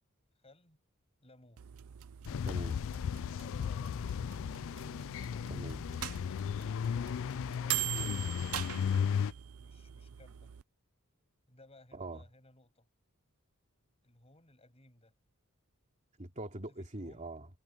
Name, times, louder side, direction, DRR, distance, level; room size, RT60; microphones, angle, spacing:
voice 1, 0.3-0.8 1.2-1.6 3.2-4.0 9.6-10.5 11.5-12.9 14.0-15.1 17.0-17.3, left 1 dB, 25° left, 7.6 m, -60 dB
sound 1, 1.6-10.6, right 14 dB, 65° right, 0.5 m, -43 dB
sound 2, 2.3-9.3, left 7 dB, 60° left, 0.3 m, -35 dB
voice 2, 2.4-2.8 5.5-5.8 11.9-12.2 16.2-17.5, right 1 dB, 35° right, 2.8 m, -42 dB
sound 3, 6.0-6.2 8.5-9.5, right 9 dB, 90° right, 2.6 m, -41 dB
head